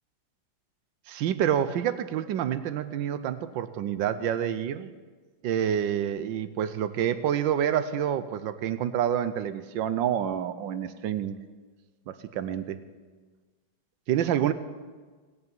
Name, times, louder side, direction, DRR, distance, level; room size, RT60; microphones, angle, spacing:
voice 1, 1.1-4.9 5.4-11.4 12.1-12.8 14.1-14.5, right 9 dB, 70° right, 12 dB, 1.3 m, -28 dB
17.5 x 6.8 x 8.8 m, 1.4 s
omnidirectional pair, 2.2 m